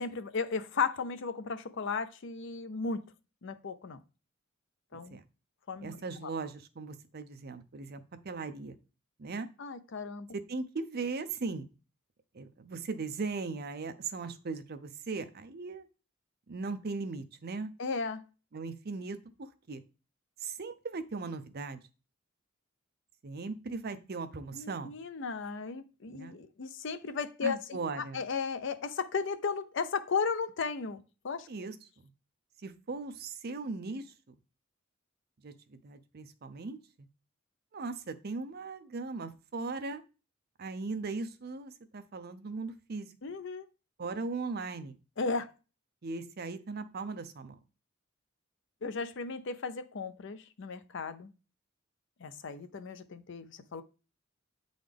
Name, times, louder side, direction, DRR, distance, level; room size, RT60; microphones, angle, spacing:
voice 1, 0.0-3.0 3.4-4.0 4.9-5.2 5.7-6.0 6.2-6.3 9.6-10.3 17.8-18.2 24.5-31.5 43.2-43.7 45.2-45.5 48.8-51.3 52.2-53.8, left 5 dB, 65° left, 12 dB, 0.5 m, -35 dB
voice 2, 5.8-8.8 9.2-9.5 10.3-11.7 12.3-15.9 16.5-17.7 18.5-19.8 20.4-21.8 23.2-24.9 26.1-26.4 27.4-28.2 31.5-31.7 32.6-34.1 35.4-37.1 37.7-40.0 40.6-43.1 44.0-45.0 46.0-47.6, right 4 dB, 50° right, 10 dB, 0.6 m, -38 dB
8.2 x 3.9 x 3.4 m, 0.33 s
head